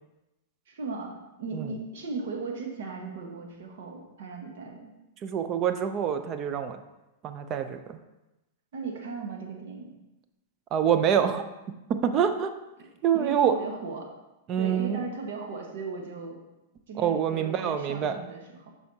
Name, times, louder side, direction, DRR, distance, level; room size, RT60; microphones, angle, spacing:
voice 1, 0.7-4.9 8.7-9.9 13.1-14.1 14.6-16.4 16.9-18.7, right 4 dB, 70° right, 1 dB, 1.3 m, -37 dB
voice 2, 5.2-6.8 7.2-8.0 10.7-11.4 12.0-12.5 13.0-13.6 14.5-15.0 17.0-18.2, right 8 dB, 35° right, 9 dB, 0.6 m, -26 dB
7.5 x 5.6 x 2.8 m, 0.99 s
hypercardioid pair, 120°, 0 cm